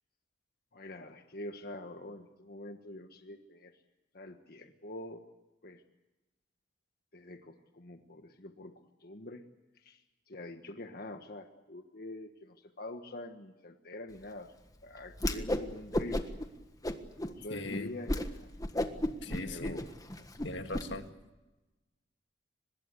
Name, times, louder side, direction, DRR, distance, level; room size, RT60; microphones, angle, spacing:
voice 1, 0.7-3.7 4.1-5.2 5.6-5.8 7.1-8.7 9.0-9.4 9.7-14.5 14.8-16.2 17.2-18.5 19.4-20.2, left 1 dB, 55° left, 5 dB, 1.4 m, -45 dB
Whoosh swoosh swish, 15.1-15.7 15.9-16.5 16.8-17.3 17.7-17.8 18.1-18.3 18.6-20.9, left 1 dB, 20° left, 1.5 m, -32 dB
voice 2, 17.5-17.9 19.2-19.8 20.4-21.0, left 2 dB, 70° left, 7 dB, 1.8 m, -39 dB
24.0 x 21.0 x 8.3 m, 1.1 s
head